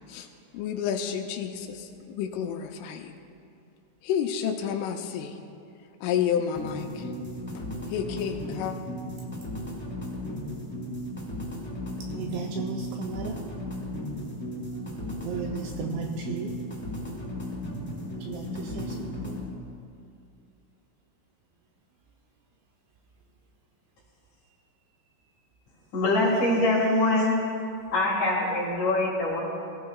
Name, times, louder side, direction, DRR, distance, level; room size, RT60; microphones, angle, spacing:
voice 1, 0.5-3.2 4.0-5.4 6.0-7.1 7.5-7.6 7.9-8.7, left 8 dB, 85° left, 4 dB, 3.0 m, -30 dB
sound 1, 6.6-19.5, left 1 dB, 5° left, 2.1 m, -35 dB
voice 2, 12.2-13.4 15.2-16.5 18.2-19.4, right 5 dB, 90° right, 1 dB, 2.6 m, -35 dB
voice 3, 25.9-27.4 27.9-29.4, left 2 dB, 55° left, -3 dB, 2.4 m, -23 dB
22.5 x 15.0 x 2.4 m, 2.5 s
omnidirectional pair, 5.9 m